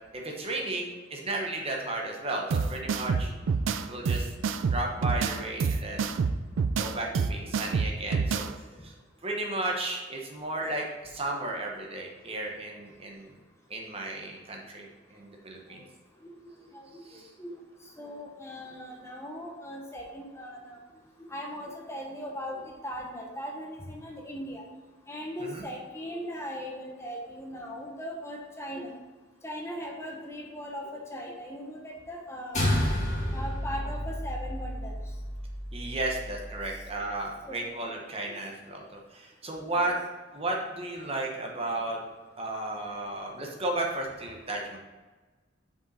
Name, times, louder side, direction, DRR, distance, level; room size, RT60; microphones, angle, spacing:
voice 1, 0.1-3.3 3.9-4.3 4.7-6.2 6.8-8.5 8.8-8.9 9.2-13.3 13.7-15.8 25.4-25.6 35.7-39.9 40.3-42.0 42.4-44.8, right 2 dB, 30° right, 0 dB, 0.9 m, -34 dB
sound 1, 2.5-8.5, right 5 dB, 80° right, 0.4 m, -28 dB
voice 2, 7.4-7.8 16.7-16.9 17.4-17.6 18.0-20.8 21.3-24.6 25.1-28.9 29.4-32.8 33.3-34.9 37.5-37.7 38.2-38.4 39.7-39.9, equal, 15° left, -1 dB, 0.9 m, -39 dB
sound 2, 32.5-37.1, left 1 dB, 40° left, 2.0 m, -31 dB
5.6 x 5.2 x 4.1 m, 1.3 s
head